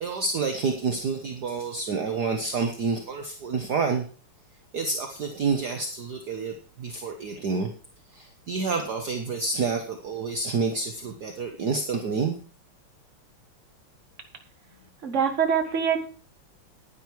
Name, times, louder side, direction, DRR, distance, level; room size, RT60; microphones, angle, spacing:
voice 1, 0.0-4.1 4.7-7.7 8.1-12.4, right 4 dB, 55° right, 4 dB, 1.6 m, -28 dB
voice 2, 15.0-16.1, right 7 dB, 35° right, 5 dB, 1.8 m, -24 dB
10.5 x 10.0 x 4.6 m, 0.41 s
omnidirectional pair, 2.4 m